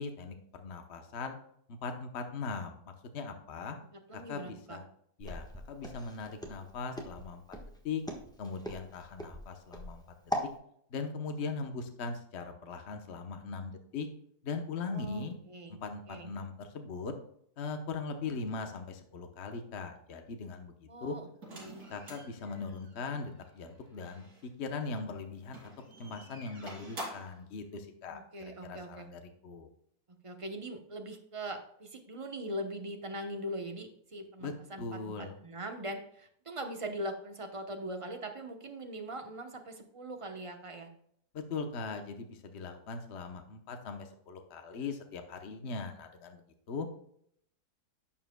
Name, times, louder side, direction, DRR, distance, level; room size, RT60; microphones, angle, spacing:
voice 1, 0.0-1.4 1.7-3.8 4.1-4.9 5.2-8.0 8.4-10.0 10.9-14.1 14.4-15.3 15.7-17.1 17.6-21.2 21.9-25.7 26.0-28.2 28.6-29.7 34.4-34.5 34.8-35.4 41.3-46.9, left 4 dB, 50° left, 6 dB, 1.1 m, -40 dB
voice 2, 4.1-4.8 14.9-15.8 16.1-16.3 20.9-21.3 21.5-21.9 28.1-29.1 30.2-40.9, right 1 dB, 25° right, 4 dB, 0.7 m, -41 dB
Walk footsteps, 5.2-10.5, equal, 5° left, 0.9 m, -40 dB
sound 1, 21.4-24.5 25.4-27.4, right 1 dB, 70° right, 3.4 m, -48 dB
11.0 x 7.3 x 2.2 m, 0.68 s
omnidirectional pair, 1.7 m